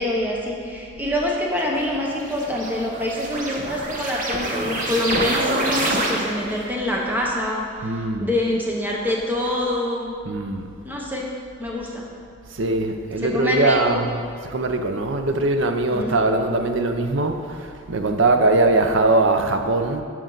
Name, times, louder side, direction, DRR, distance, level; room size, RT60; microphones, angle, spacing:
voice 1, 0.0-10.1 10.8-11.3 11.6-12.0 13.2-14.0 15.9-16.1, left 1 dB, 10° right, -2 dB, 1.0 m, -25 dB
sound 1, 1.6-6.6, right 1 dB, 40° right, 0.9 m, -27 dB
voice 2, 7.8-8.3 10.2-10.7 12.5-20.0, right 2 dB, 65° right, 6 dB, 0.7 m, -21 dB
10.5 x 6.1 x 4.0 m, 2.2 s
head